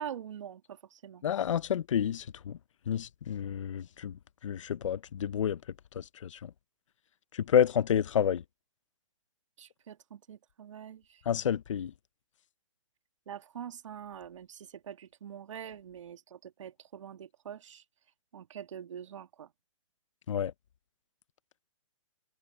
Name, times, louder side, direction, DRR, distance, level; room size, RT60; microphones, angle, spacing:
voice 1, 0.0-1.2 9.6-11.2 13.3-17.8 18.3-19.5, right 9 dB, 70° right, 1.9 m, -44 dB
voice 2, 1.2-2.6 2.9-4.1 4.4-5.6 6.0-6.5 7.3-8.4 11.3-11.9 20.3-20.5, left 9 dB, 70° left, 0.8 m, -29 dB
hypercardioid pair, 160°, 17 cm